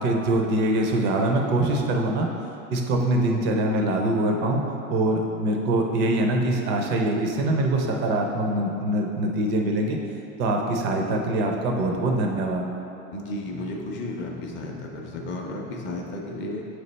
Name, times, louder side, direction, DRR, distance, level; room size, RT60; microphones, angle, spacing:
voice 1, 0.0-2.3 2.7-4.6 4.9-10.0 10.4-12.7, right 1 dB, 25° right, 2 dB, 0.4 m, -23 dB
voice 2, 13.1-16.7, left 2 dB, 25° left, 0 dB, 0.6 m, -33 dB
7.9 x 3.3 x 4.0 m, 2.9 s
supercardioid pair, 145°, 44 cm